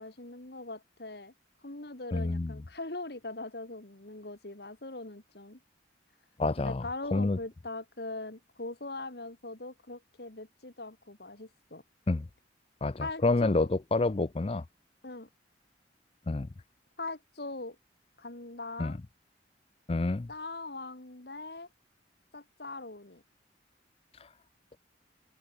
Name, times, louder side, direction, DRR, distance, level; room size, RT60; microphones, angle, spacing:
voice 1, 0.0-1.3 1.6-5.6 6.6-11.8 13.0-13.7 15.0-15.3 17.0-17.8 18.2-19.0 20.3-21.7 22.3-23.2, left 2 dB, 60° left, 2.0 m, -41 dB
voice 2, 2.1-2.6 6.4-6.8 7.1-7.4 12.1-12.3 12.8-14.6 16.3-16.5 18.8-19.0 19.9-20.3, left 2 dB, 30° left, 0.5 m, -28 dB
open air
head